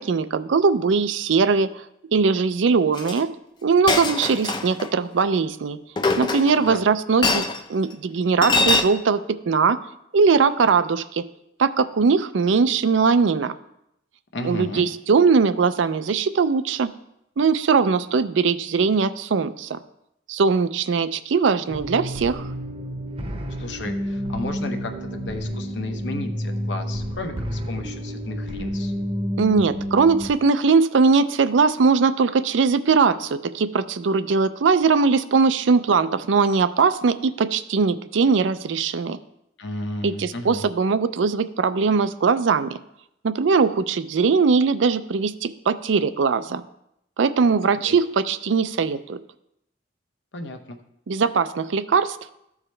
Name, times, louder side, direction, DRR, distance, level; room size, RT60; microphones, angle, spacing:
voice 1, 0.0-1.8 2.1-3.3 3.6-5.8 6.2-9.8 10.1-11.2 11.6-13.5 14.4-16.9 17.4-19.8 20.3-22.5 29.4-39.2 40.0-42.8 43.2-46.6 47.2-49.2 51.1-52.2, right 5 dB, 85° right, 13 dB, 0.4 m, -20 dB
Chink clink, 3.0-3.2 3.9-4.9 6.0-6.7 7.2-7.6 8.4-8.8, left 3 dB, 25° left, 0.5 m, -22 dB
voice 2, 14.3-14.9 23.6-28.9 39.6-40.6 47.8-48.0 50.3-50.8, left 2 dB, 70° left, 6 dB, 0.8 m, -33 dB
sound 1, 21.7-30.3, equal, 30° right, 0.8 m, -29 dB
14.0 x 4.8 x 3.3 m, 0.80 s
head